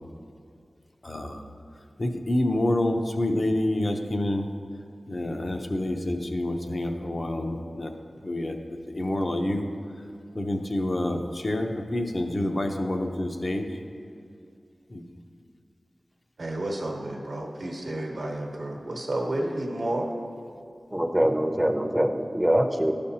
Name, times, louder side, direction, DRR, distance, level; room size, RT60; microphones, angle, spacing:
voice 1, 1.0-1.4 2.0-4.5 5.1-7.9 8.2-9.6 10.3-13.7 14.9-15.0, left 1 dB, 50° left, 3 dB, 0.6 m, -28 dB
voice 2, 16.4-20.1, right 1 dB, 75° right, 1 dB, 0.9 m, -31 dB
voice 3, 20.9-22.9, right 1 dB, 10° right, 5 dB, 0.5 m, -23 dB
11.5 x 5.1 x 2.8 m, 2.4 s
cardioid pair, 45°, 0 cm